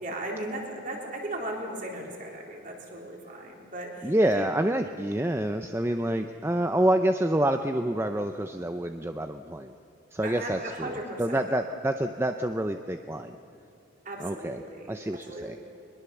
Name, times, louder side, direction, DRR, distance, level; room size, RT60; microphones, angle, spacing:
voice 1, 0.0-4.5 10.2-11.7 14.0-15.6, right 1 dB, 40° right, 0 dB, 3.7 m, -37 dB
voice 2, 4.0-9.7 10.1-10.9 11.2-13.3 14.2-14.6 14.9-15.6, right 1 dB, 10° right, 7 dB, 0.5 m, -27 dB
22.5 x 21.0 x 7.1 m, 3.0 s
head